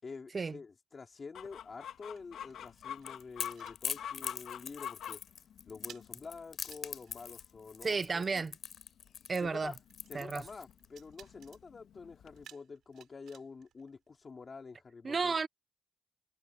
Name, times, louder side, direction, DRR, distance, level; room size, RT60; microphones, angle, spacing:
voice 1, 0.0-5.2 5.7-8.5 9.4-9.7 10.1-15.4, left 4 dB, 35° left, 3.5 m, -48 dB
sound 1, 1.1-4.4 4.7-5.0 5.2-14.6, right 10 dB, 70° right, 7.4 m, -61 dB
Chicken rooster, 1.3-12.4, left 9 dB, 70° left, 1.7 m, -48 dB
Crackle / Crack, 2.7-10.8, left 7 dB, 55° left, 3.5 m, -42 dB
voice 2, 7.8-8.5 9.3-9.7 10.1-10.4 15.0-15.5, right 4 dB, 35° right, 0.7 m, -32 dB
cardioid pair, 90°, 0 cm